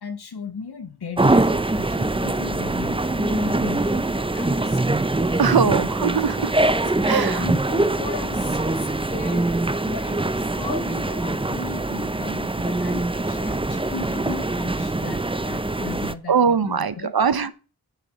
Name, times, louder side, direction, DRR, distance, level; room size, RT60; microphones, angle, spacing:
voice 1, 0.0-4.8 5.2-5.8 7.1-17.1, left 5 dB, 90° left, 1.2 m, -36 dB
sound 1, 1.2-16.1, right 2 dB, 15° right, 0.6 m, -23 dB
voice 2, 5.4-6.5 7.0-7.5 16.3-17.5, right 6 dB, 70° right, 1.0 m, -21 dB
7.7 x 7.3 x 7.9 m
wide cardioid pair, 70°, 38 cm